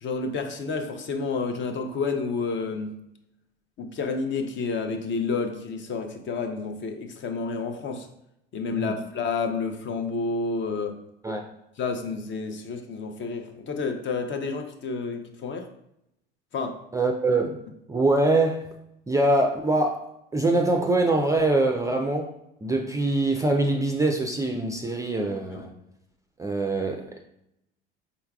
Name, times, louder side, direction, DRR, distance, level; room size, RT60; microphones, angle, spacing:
voice 1, 0.0-3.0 3.8-8.1 8.5-11.0 11.8-15.7 16.5-16.8 25.5-25.6, left 4 dB, 40° left, 6 dB, 0.6 m, -30 dB
voice 2, 16.9-17.6 17.9-18.7 19.1-20.1 20.3-22.3 22.6-25.7 26.4-27.2, right 2 dB, 10° right, 2 dB, 0.3 m, -23 dB
4.4 x 3.9 x 2.3 m, 0.81 s
hypercardioid pair, 70°, 30 cm